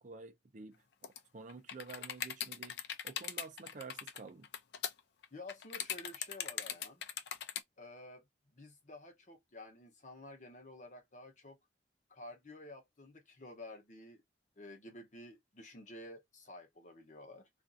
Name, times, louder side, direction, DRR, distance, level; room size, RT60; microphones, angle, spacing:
voice 1, 0.0-2.8 3.0-4.5, right 4 dB, 40° right, 0.5 m, -50 dB
sound 1, 1.0-1.2 1.5-7.6, left 9 dB, 60° left, 0.4 m, -40 dB
voice 2, 5.3-7.0 7.8-8.2 8.5-11.6 12.1-14.2 14.6-17.5, left 1 dB, 40° left, 0.9 m, -51 dB
2.6 x 2.5 x 2.4 m
head